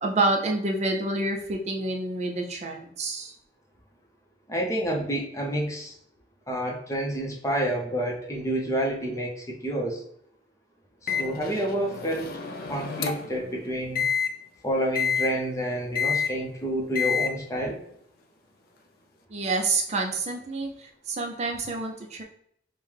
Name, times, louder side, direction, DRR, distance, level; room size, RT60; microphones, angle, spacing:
voice 1, 0.0-3.3 19.3-22.2, right 2 dB, 40° right, 1 dB, 0.5 m, -28 dB
voice 2, 4.5-5.9 6.5-10.0 11.0-12.4 12.7-14.1 14.6-17.8, right 1 dB, 20° left, 0 dB, 0.7 m, -29 dB
Microwave oven, 11.1-13.4 14.0-14.3 15.0-15.3 16.0-16.3 17.0-17.3, left 6 dB, 55° left, 0.4 m, -28 dB
5.3 x 2.1 x 3.2 m, 0.68 s
head